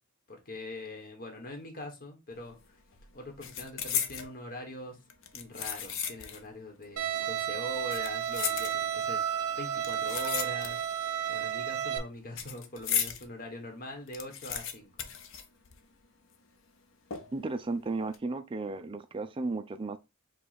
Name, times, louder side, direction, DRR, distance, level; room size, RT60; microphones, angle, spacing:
voice 1, 0.3-2.7 3.1-5.0 5.3-10.8 11.3-15.1, left 1 dB, 40° left, 1.2 m, -42 dB
sound 1, 2.4-2.6 2.9-4.3 5.1-6.5 6.8-6.9 7.7-9.1 9.8-11.0 11.3-13.2 13.6-13.7 13.9-16.1 16.3-16.4 17.1-17.5 17.9-18.2, left 8 dB, 65° left, 0.6 m, -36 dB
Bowed string instrument, 7.0-12.0, right 9 dB, 85° right, 0.7 m, -32 dB
voice 2, 17.3-20.0, right 3 dB, 25° right, 0.4 m, -34 dB
4.8 x 2.3 x 4.1 m
head